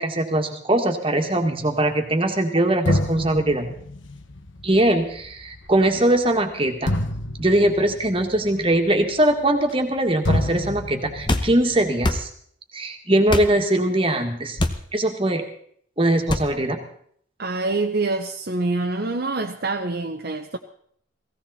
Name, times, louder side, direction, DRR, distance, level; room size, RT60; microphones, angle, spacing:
voice 1, 0.0-3.7 4.6-7.0 7.4-12.3 12.7-14.6 14.9-15.4 16.0-16.8, right 1 dB, 25° right, 5 dB, 1.8 m, -21 dB
sound 1, 2.3-2.4 2.9-10.0 10.2-12.3, left 1 dB, 70° left, 1.1 m, -29 dB
sound 2, 11.2-11.5 12.0-12.2 13.3-13.5 14.6-14.8 16.3-16.5, left 1 dB, 25° left, 1.0 m, -23 dB
voice 2, 17.4-20.6, right 3 dB, 50° right, 3 dB, 0.9 m, -25 dB
17.0 x 16.5 x 4.2 m, 0.63 s
head